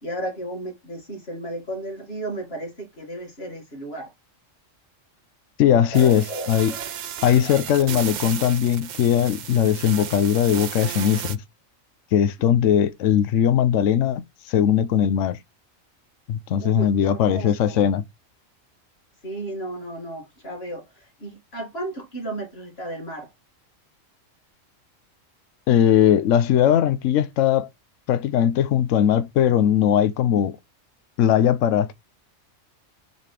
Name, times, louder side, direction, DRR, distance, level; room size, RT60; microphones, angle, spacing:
voice 1, 0.0-4.1 5.8-6.9 7.4-8.3 12.4-12.5 16.6-17.8 19.2-23.3, right 1 dB, 50° left, 2.6 m, -34 dB
voice 2, 5.6-6.7 7.2-11.4 12.1-15.4 16.3-18.0 25.7-27.7 28.1-30.6 31.2-31.9, left 9 dB, 75° left, 1.0 m, -19 dB
sound 1, 5.9-11.4, right 10 dB, 85° right, 0.4 m, -34 dB
7.0 x 4.2 x 3.3 m
omnidirectional pair, 1.4 m